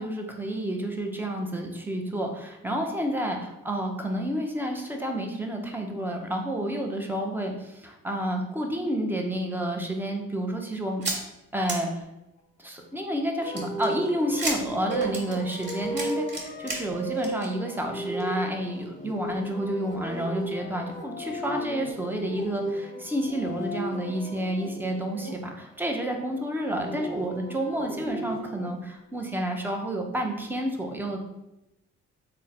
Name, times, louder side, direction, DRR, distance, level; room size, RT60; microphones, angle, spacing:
voice 1, 0.0-11.1 11.5-12.0 12.6-16.3 16.6-31.2, right 1 dB, 5° right, 2 dB, 0.6 m, -30 dB
sound 1, 11.0-11.2 11.7-11.8 13.6-16.8 17.1-17.5 17.9-18.0 18.2-18.3, right 2 dB, 35° right, 1.5 m, -32 dB
sound 2, 13.4-25.3 26.5-28.7, right 1 dB, 25° left, 1.0 m, -35 dB
3.6 x 2.2 x 4.1 m, 0.91 s
cardioid pair, 90°, 30 cm